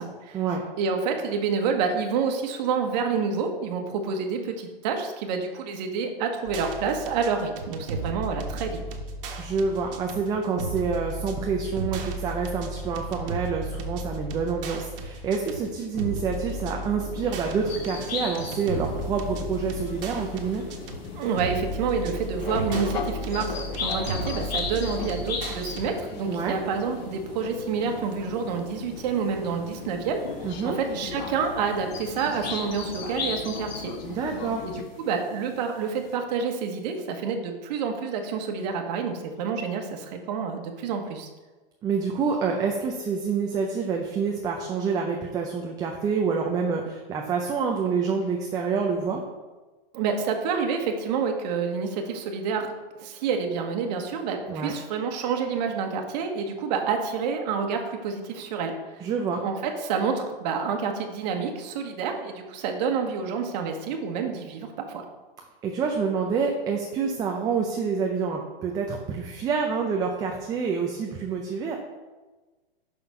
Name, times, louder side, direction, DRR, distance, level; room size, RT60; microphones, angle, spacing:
voice 1, 0.0-0.4 0.8-8.8 21.1-34.0 34.6-34.7 35.0-41.3 49.9-59.0 59.4-65.0, right 5 dB, 45° right, 4 dB, 1.3 m, -28 dB
sound 1, 6.5-25.9, right 2 dB, 65° right, 1.4 m, -35 dB
voice 2, 9.4-20.6 26.3-26.6 30.4-30.8 34.1-34.6 41.8-49.2 54.5-54.7 59.0-59.4 65.6-71.8, right 5 dB, 15° right, 1 dB, 0.5 m, -27 dB
sound 2, 15.9-34.8, left 6 dB, 50° left, 1.0 m, -39 dB
sound 3, 17.7-36.1, left 4 dB, 80° left, 2.7 m, -39 dB
6.0 x 5.8 x 5.5 m, 1.2 s
hypercardioid pair, 145°, 30 cm